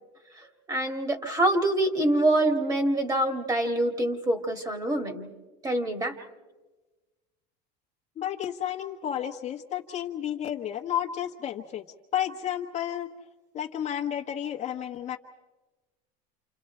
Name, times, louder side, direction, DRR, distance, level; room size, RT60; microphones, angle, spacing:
voice 1, 0.7-5.3 5.6-6.2, right 1 dB, 20° right, 7 dB, 2.1 m, -25 dB
voice 2, 8.2-11.8 12.1-13.1 13.5-15.2, left 10 dB, 35° left, 2 dB, 1.2 m, -31 dB
29.0 x 28.0 x 4.4 m, 1.2 s
supercardioid pair, 130°, 20 cm